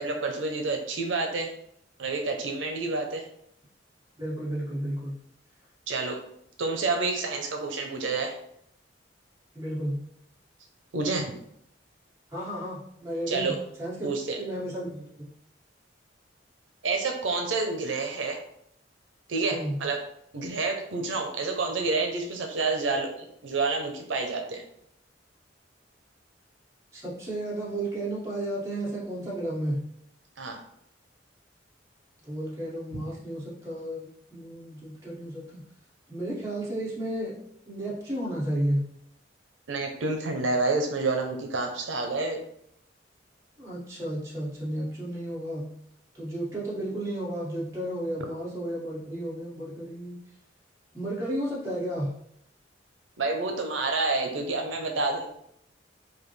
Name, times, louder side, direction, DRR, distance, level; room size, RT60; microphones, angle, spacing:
voice 1, 0.0-1.5 2.0-3.2 5.9-6.2 6.6-8.4 10.9-11.3 13.3-13.5 14.0-14.4 16.8-18.4 19.3-20.0 20.3-24.6 30.4-30.6 39.7-42.4 53.2-55.3, right 3 dB, 90° right, 4 dB, 0.6 m, -28 dB
voice 2, 4.2-5.1 9.5-10.0 12.3-13.5 13.8-14.1 14.4-15.3 19.5-19.8 26.9-29.8 32.2-35.6 36.1-37.4 37.7-38.9 43.6-45.7 46.1-50.2 50.9-52.1, right 1 dB, 15° right, -7 dB, 1.6 m, -32 dB
5.2 x 2.3 x 3.2 m, 0.71 s
head